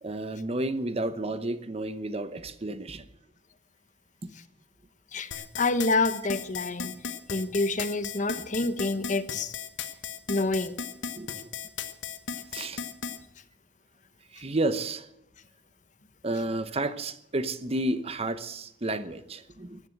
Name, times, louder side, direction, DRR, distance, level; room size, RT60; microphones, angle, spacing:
voice 1, 0.0-3.1 11.1-11.5 12.5-12.9 14.3-15.1 16.2-19.8, right 2 dB, 35° right, 12 dB, 0.9 m, -31 dB
voice 2, 5.1-7.0 7.3-9.5 10.3-10.7, left 2 dB, 40° left, 12 dB, 1.0 m, -27 dB
sound 1, 5.3-13.2, left 7 dB, 80° left, 1.4 m, -36 dB
15.5 x 11.0 x 7.8 m, 0.78 s
head